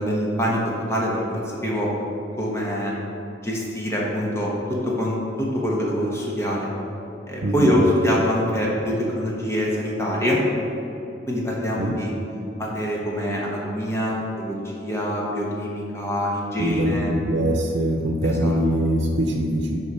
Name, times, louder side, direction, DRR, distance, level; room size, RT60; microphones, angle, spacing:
voice 1, 0.0-1.9 2.4-2.9 3.4-6.7 7.3-10.4 11.3-12.1 12.6-17.1 18.2-18.6, equal, 15° left, -4 dB, 1.2 m, -24 dB
voice 2, 16.6-19.8, equal, 85° right, 1 dB, 0.7 m, -23 dB
6.5 x 4.5 x 5.5 m, 2.8 s
head